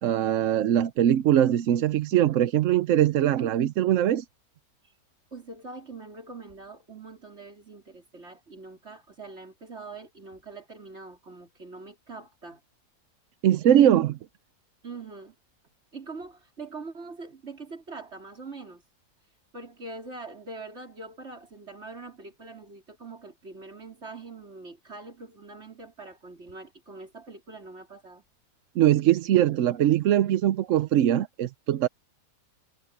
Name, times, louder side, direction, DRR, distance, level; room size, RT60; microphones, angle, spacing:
voice 1, 0.0-4.2 13.4-14.2 28.8-31.9, right 11 dB, 65° right, 0.9 m, -22 dB
voice 2, 5.3-12.6 14.8-15.3 15.9-18.8 19.5-28.2, right 3 dB, 45° right, 4.4 m, -43 dB
omnidirectional pair, 1.6 m